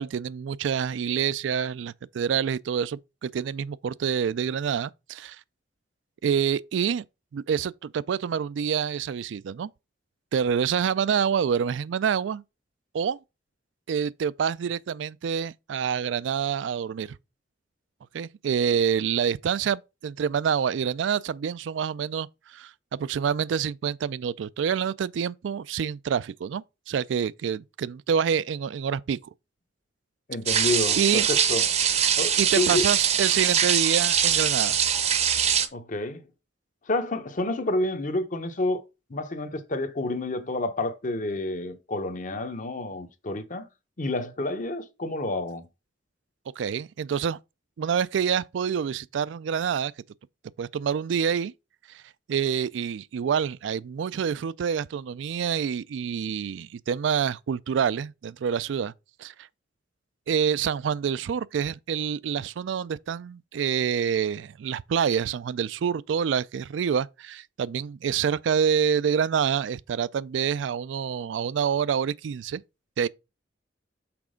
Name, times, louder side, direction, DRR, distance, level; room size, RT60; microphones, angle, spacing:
voice 1, 0.0-5.4 6.2-7.0 7.3-9.7 10.3-12.4 12.9-13.2 13.9-17.2 18.1-29.2 31.0-31.3 32.4-34.8 46.6-47.4 47.8-49.9 50.6-51.5 51.9-52.0 52.3-58.9 59.2-59.3 60.3-72.6 73.0-73.1, right 7 dB, 75° right, 0.3 m, -27 dB
voice 2, 30.3-31.6 32.2-32.9 35.7-36.2 36.9-43.7 44.0-45.7, left 2 dB, 45° left, 0.8 m, -29 dB
sound 1, 30.5-35.7, right 8 dB, 35° right, 0.7 m, -23 dB
6.0 x 4.1 x 5.0 m
head